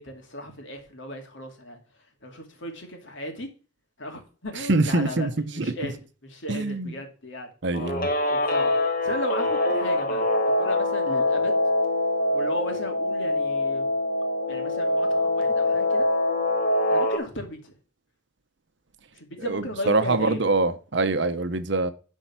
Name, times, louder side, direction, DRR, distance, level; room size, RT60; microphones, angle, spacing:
voice 1, 0.0-1.8 2.2-3.5 4.0-5.9 6.2-7.5 8.0-8.7 9.0-10.2 10.6-11.6 12.3-13.9 14.5-16.1 16.9-17.7 19.1-20.4, equal, 70° left, 2.5 m, -35 dB
voice 2, 4.6-5.9 6.5-7.0 7.6-8.1 19.5-21.9, right 3 dB, 60° right, 0.9 m, -24 dB
Guitar, 7.7-17.2, left 2 dB, 45° left, 1.3 m, -24 dB
11.0 x 4.6 x 6.0 m
head